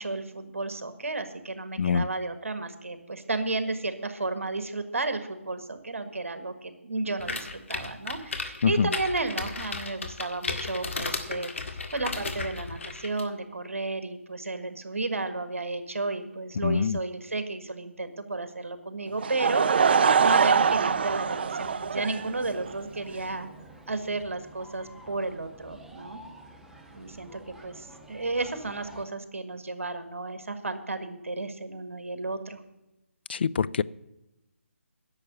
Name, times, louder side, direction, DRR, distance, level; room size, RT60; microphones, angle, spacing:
voice 1, 0.0-11.5 11.9-23.5 23.9-26.2 26.9-32.6, right 3 dB, 70° right, 10 dB, 1.6 m, -33 dB
sound 1, 7.2-13.2, left 3 dB, 65° left, 1.7 m, -34 dB
voice 2, 16.6-17.0 33.3-33.8, left 6 dB, 50° left, 18 dB, 0.4 m, -24 dB
Laughter / Crowd, 19.2-22.7, right 6 dB, 45° right, 0.6 m, -23 dB
sound 2, 20.5-29.0, right 1 dB, 5° right, 0.8 m, -50 dB
10.5 x 6.9 x 9.4 m, 0.97 s
figure-of-eight pair, 150°, 7 cm